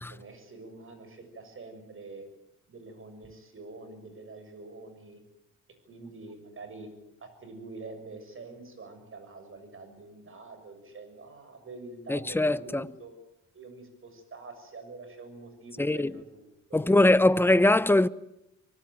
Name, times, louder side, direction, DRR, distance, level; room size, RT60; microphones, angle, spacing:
voice 1, 0.1-2.3 2.7-5.2 5.9-6.9 7.2-13.2 13.5-17.1, right 3 dB, 45° right, 7.0 m, -46 dB
voice 2, 12.1-12.9 15.8-16.1 16.7-18.1, left 2 dB, 5° left, 0.8 m, -22 dB
25.0 x 18.0 x 9.4 m
cardioid pair, 90°, 30 cm